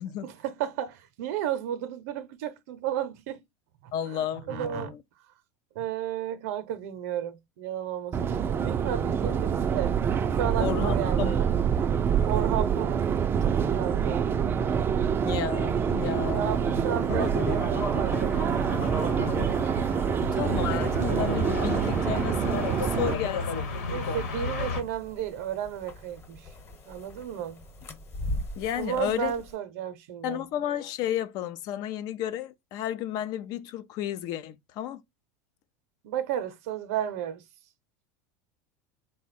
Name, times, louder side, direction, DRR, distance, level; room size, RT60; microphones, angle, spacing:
voice 1, 0.2-3.4 4.1-4.9 5.7-10.0 10.3-11.5 12.2-13.0 13.7-14.3 16.3-18.4 23.9-26.5 26.9-27.6 28.7-30.4 36.0-37.4, right 10 dB, 75° right, 0.6 m, -33 dB
voice 2, 3.9-5.0 10.6-11.4 15.2-16.5 20.2-23.6 28.6-29.3 30.2-35.0, left 11 dB, 55° left, 0.5 m, -32 dB
Subway metro underground, 8.1-23.1, right 7 dB, 25° right, 0.4 m, -26 dB
sound 1, 16.0-24.8, left 4 dB, 85° left, 1.1 m, -33 dB
sound 2, 22.4-29.6, left 1 dB, 30° left, 1.1 m, -41 dB
3.6 x 2.2 x 4.1 m
supercardioid pair, 105°, 8 cm